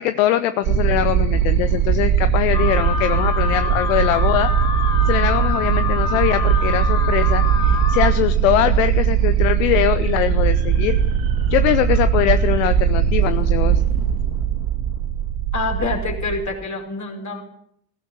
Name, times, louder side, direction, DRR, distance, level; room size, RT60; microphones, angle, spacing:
voice 1, 0.0-4.5 5.1-11.0 11.5-13.8, left 12 dB, 70° left, 12 dB, 0.9 m, -22 dB
sound 1, 0.6-16.4, right 8 dB, 70° right, 4.2 m, -19 dB
Alarm, 2.5-8.1, left 5 dB, 15° left, 3.5 m, -26 dB
voice 2, 15.5-17.4, left 3 dB, 45° left, 3 dB, 5.3 m, -26 dB
20.5 x 16.5 x 8.5 m, 0.72 s
figure-of-eight pair, 40°, 41 cm